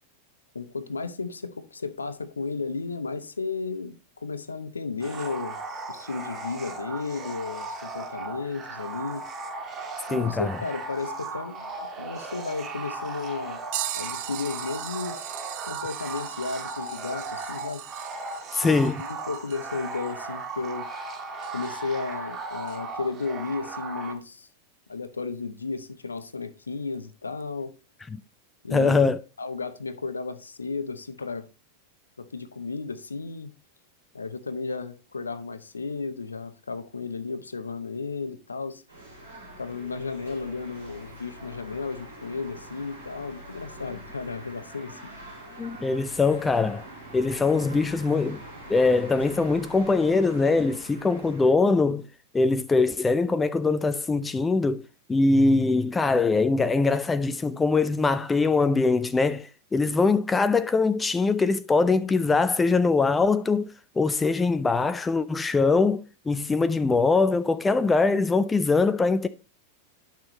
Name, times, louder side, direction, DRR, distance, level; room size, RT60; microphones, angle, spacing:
voice 1, 0.5-5.6 5.9-9.2 10.1-13.6 13.9-17.8 18.6-20.9 21.5-24.5 24.9-27.7 28.6-29.1 29.4-31.5 32.2-33.5 34.1-38.8 39.6-45.1, left 4 dB, 75° left, 0.7 m, -34 dB
sound 1, 5.0-24.1, right 3 dB, 30° right, 1.6 m, -37 dB
voice 2, 10.1-10.6 18.5-19.0 28.1-28.2 28.7-29.2 45.6-46.8 47.1-48.4 48.7-52.1 52.3-54.8 55.1-69.3, left 3 dB, 15° left, 0.5 m, -22 dB
sound 2, 13.7-21.9 22.7-22.8 25.0-25.1 26.2-26.3 27.4-27.5, right 15 dB, 50° right, 0.5 m, -39 dB
sound 3, 38.9-51.5, right 1 dB, 80° right, 4.1 m, -44 dB
9.9 x 6.2 x 3.0 m
figure-of-eight pair, 90°, 0 cm